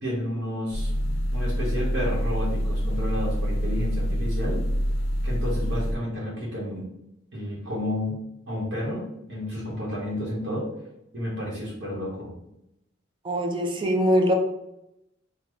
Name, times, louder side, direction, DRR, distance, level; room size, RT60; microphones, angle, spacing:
voice 1, 0.0-0.9 1.3-4.6 5.2-6.9 7.3-8.2 8.5-10.7 11.1-12.3, left 1 dB, 60° right, -5 dB, 1.1 m, -31 dB
sound 1, 0.7-5.9, equal, 80° left, 0.5 m, -26 dB
voice 2, 13.2-14.3, equal, 25° right, 2 dB, 0.5 m, -22 dB
3.8 x 2.2 x 3.0 m, 0.84 s
head